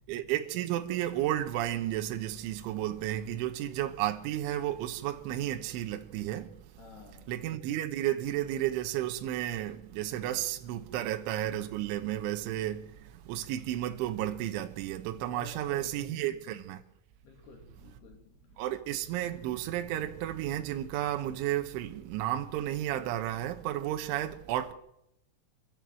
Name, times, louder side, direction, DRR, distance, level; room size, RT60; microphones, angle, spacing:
voice 1, 0.1-6.6 7.3-16.8 18.6-24.7, right 13 dB, 80° right, 3.5 m, -32 dB
voice 2, 6.8-7.3 10.2-10.3 15.3-16.4 17.2-18.7, left 3 dB, 60° left, 4.5 m, -52 dB
28.5 x 13.5 x 7.7 m
omnidirectional pair, 5.5 m